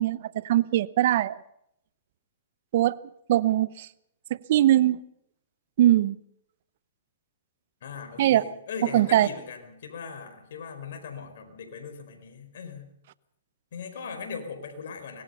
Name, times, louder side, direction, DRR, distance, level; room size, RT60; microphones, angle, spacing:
voice 1, 0.0-1.4 2.7-3.0 3.3-3.9 4.3-5.0 5.8-6.2 8.2-8.4 8.9-9.3, right 13 dB, 55° right, 0.8 m, -21 dB
voice 2, 7.8-12.9 13.7-15.2, left 5 dB, 65° left, 4.7 m, -39 dB
24.0 x 19.5 x 5.6 m
hypercardioid pair, 140°, 0 cm